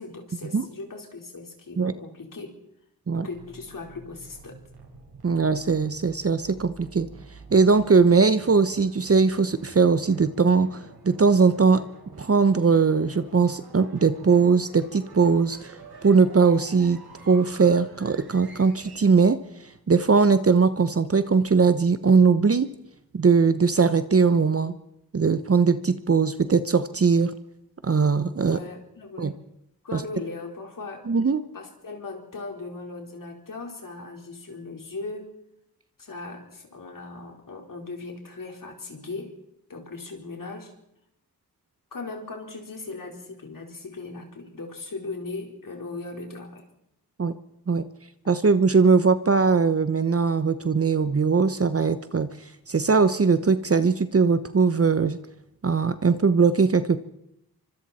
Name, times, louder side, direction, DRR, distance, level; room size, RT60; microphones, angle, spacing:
voice 1, 0.0-2.5 3.1-4.6 28.5-29.4 29.8-31.1 31.5-35.3 36.0-39.4 39.7-40.7 41.9-46.7, left 3 dB, 55° left, 1 dB, 4.3 m, -38 dB
sound 1, 3.3-19.1, right 3 dB, 75° right, 5.5 m, -48 dB
voice 2, 5.2-7.1 7.5-11.8 12.2-17.0 17.3-19.4 19.9-22.7 23.1-24.7 25.1-27.3 27.8-28.6 29.2-29.3 29.9-30.0 31.1-31.4 47.2-47.3 47.7-47.8 48.3-52.3 52.7-55.2 55.6-57.0, right 5 dB, 35° right, 12 dB, 1.0 m, -20 dB
25.0 x 24.5 x 4.3 m, 0.81 s
cardioid pair, 65°, 38 cm